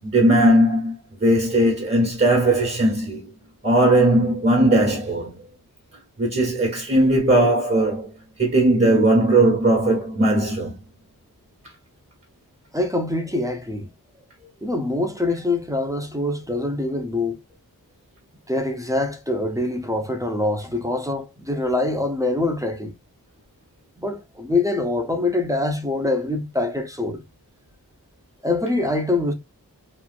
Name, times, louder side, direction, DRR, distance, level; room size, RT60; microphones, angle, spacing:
voice 1, 0.0-3.3 3.6-5.4 6.2-8.1 8.4-10.7, right 1 dB, 35° right, 1.2 m, -18 dB
voice 2, 12.7-13.9 14.4-17.4 18.5-22.9 24.0-27.2 28.4-29.3, left 2 dB, 10° right, 0.7 m, -24 dB
3.0 x 2.7 x 2.4 m
wide cardioid pair, 45°, 37 cm